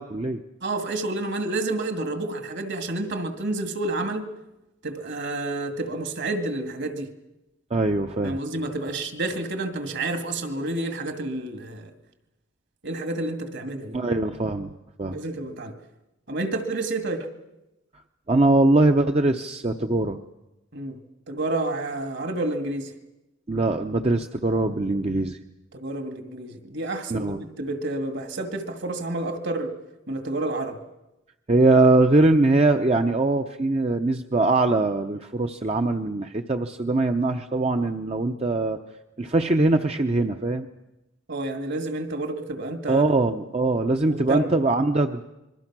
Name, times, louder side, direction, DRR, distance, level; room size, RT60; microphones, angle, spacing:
voice 1, 0.0-0.4 7.7-8.4 13.9-14.7 15.0-15.2 18.3-20.2 23.5-25.4 27.1-27.4 31.5-38.8 39.2-40.7 42.9-45.2, right 2 dB, 30° right, 0.7 m, -22 dB
voice 2, 0.6-4.3 4.8-7.1 8.2-11.9 12.8-14.0 15.0-15.7 16.3-17.3 20.7-21.0 21.3-22.9 25.7-29.7 30.1-30.8 41.3-43.0 44.1-44.5, right 2 dB, 60° right, 2.2 m, -29 dB
27.0 x 22.5 x 6.1 m
head